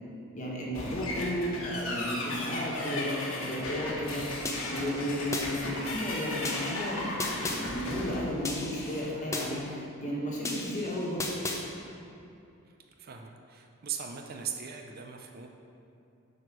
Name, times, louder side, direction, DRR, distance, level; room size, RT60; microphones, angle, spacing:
voice 1, 0.3-4.3 4.7-11.2, equal, 35° left, -4 dB, 1.5 m, -33 dB
sound 1, 0.7-9.1, left 2 dB, 65° left, 1.4 m, -36 dB
sound 2, 4.5-5.5 6.4-7.6 8.4-9.5 10.4-11.6, left 2 dB, 15° left, 0.6 m, -35 dB
voice 2, 13.0-15.5, right 7 dB, 40° right, 3 dB, 0.5 m, -39 dB
8.1 x 4.9 x 6.1 m, 2.7 s
head